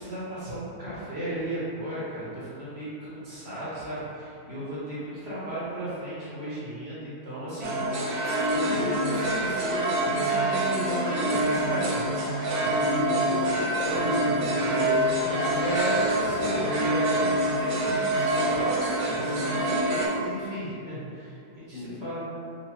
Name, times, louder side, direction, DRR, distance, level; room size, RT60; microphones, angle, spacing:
voice 1, 0.0-8.2 8.4-12.0 14.5-14.7 15.6-22.3, right 1 dB, 50° right, -10 dB, 1.1 m, -34 dB
sound 1, 7.6-20.1, right 1 dB, 90° right, 1.2 m, -26 dB
voice 2, 12.6-16.0 21.7-21.9, left 1 dB, 70° left, -11 dB, 1.7 m, -33 dB
sound 2, 13.8-16.3, left 1 dB, 50° left, 0.7 m, -45 dB
4.1 x 2.5 x 2.8 m, 2.6 s
omnidirectional pair, 1.6 m